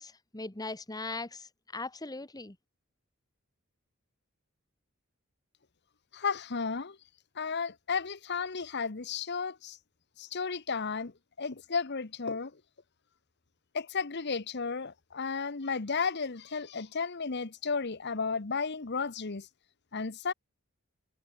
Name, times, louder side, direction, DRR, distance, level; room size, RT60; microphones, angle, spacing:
voice 1, 0.0-1.5 1.7-2.5, left 3 dB, 20° left, 1.4 m, -39 dB
voice 2, 6.1-7.0 7.4-9.8 10.2-11.1 11.4-12.5 13.7-19.5 19.9-20.3, left 5 dB, 55° left, 1.1 m, -33 dB
head